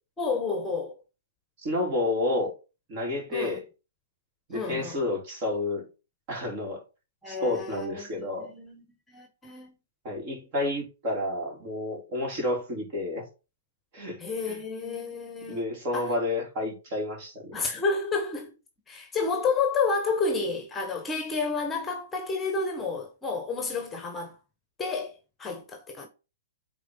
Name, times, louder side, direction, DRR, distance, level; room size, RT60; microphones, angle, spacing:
voice 1, 0.2-0.9 3.3-3.6 4.5-5.0 7.2-8.8 9.1-9.7 14.2-15.6 15.9-16.1 17.5-18.5 18.9-24.4 24.8-26.1, left 4 dB, 15° left, 1.2 m, -30 dB
voice 2, 1.6-2.5 2.9-3.6 4.5-5.9 6.3-6.8 7.3-8.5 10.0-13.2 13.9-14.6 15.5-17.7, left 2 dB, 40° right, 3.4 m, -30 dB
8.5 x 3.8 x 4.0 m
hypercardioid pair, 120°, 0 cm